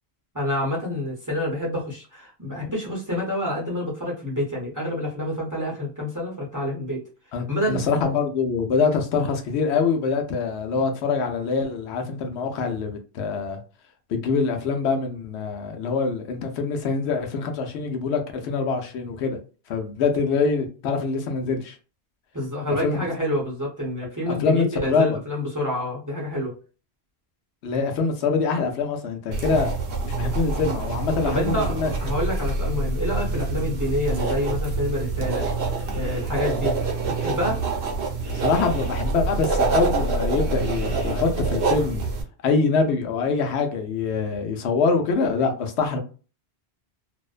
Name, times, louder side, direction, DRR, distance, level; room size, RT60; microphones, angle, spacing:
voice 1, 0.3-7.0 7.5-7.9 22.3-26.5 31.3-31.7 32.0-35.5 35.9-37.6, left 1 dB, 20° right, 0.6 m, -28 dB
voice 2, 7.3-13.6 14.1-19.4 19.7-21.8 22.8-23.0 24.3-25.2 27.6-29.7 30.0-31.9 38.3-42.1 42.4-46.0, left 4 dB, 85° left, 0.9 m, -24 dB
sound 1, 29.3-42.2, right 3 dB, 75° right, 1.0 m, -26 dB
2.5 x 2.1 x 2.3 m
omnidirectional pair, 1.1 m